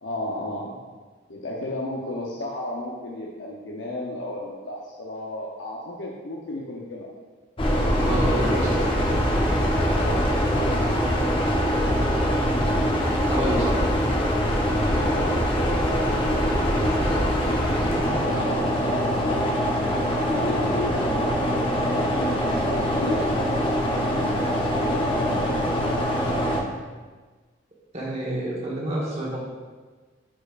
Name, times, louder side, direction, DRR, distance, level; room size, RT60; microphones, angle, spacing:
voice 1, 0.0-0.8 1.3-7.1 9.9-10.3 13.4-13.7 14.8-16.5 18.1-19.1 20.4-23.3 24.1-25.8, left 2 dB, 80° left, -3 dB, 0.8 m, -34 dB
sound 1, 7.6-26.6, equal, 30° left, 0.8 m, -23 dB
voice 2, 8.0-8.9 13.3-13.8 15.2-15.3 16.9-17.2 17.9-18.2 27.9-29.4, right 1 dB, 35° right, -5 dB, 1.4 m, -29 dB
8.6 x 5.2 x 2.5 m, 1.4 s
head